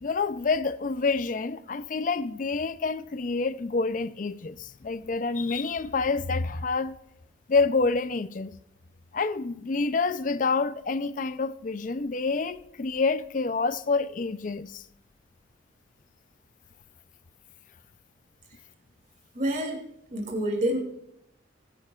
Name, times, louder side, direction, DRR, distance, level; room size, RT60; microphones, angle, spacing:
voice 1, 0.0-7.0 7.5-8.5 9.1-14.8, left 4 dB, 45° left, 0.5 m, -27 dB
voice 2, 19.3-19.8 20.1-20.8, right 1 dB, 40° right, 2.8 m, -27 dB
19.5 x 10.5 x 2.4 m
head